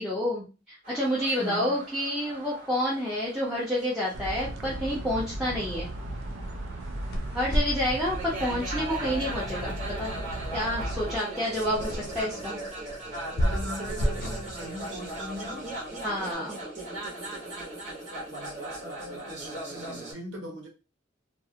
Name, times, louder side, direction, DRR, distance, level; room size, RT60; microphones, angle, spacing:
voice 1, 0.0-5.9 7.3-10.1 10.5-12.6 16.0-16.6, equal, 5° right, 0.6 m, -29 dB
sound 1, 0.8-20.1, right 1 dB, 40° right, 0.9 m, -39 dB
voice 2, 1.3-1.8 11.9-12.6 13.2-15.8 18.3-20.7, equal, 70° right, 1.1 m, -40 dB
sound 2, 4.1-11.2, right 1 dB, 85° right, 0.4 m, -36 dB
sound 3, 6.8-16.2, equal, 55° left, 0.5 m, -34 dB
2.5 x 2.0 x 2.7 m
head